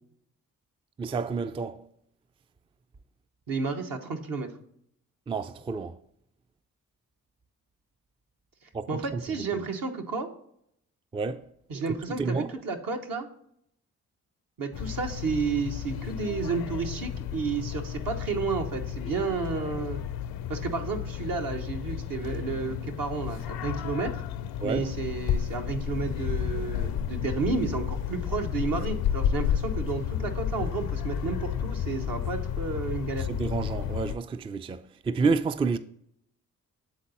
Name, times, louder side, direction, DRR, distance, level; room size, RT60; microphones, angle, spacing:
voice 1, 1.0-1.8 5.3-6.0 8.7-9.2 11.1-11.5 12.1-12.5 24.6-24.9 33.2-35.8, right 4 dB, 15° right, 0.3 m, -29 dB
voice 2, 3.5-4.5 8.9-10.3 11.7-13.3 14.6-20.0 20.5-24.2 24.6-33.3, right 4 dB, 65° right, 1.0 m, -31 dB
sound 1, 14.7-34.2, left 9 dB, 75° left, 0.5 m, -32 dB
8.5 x 4.0 x 4.0 m
supercardioid pair, 40°, 37 cm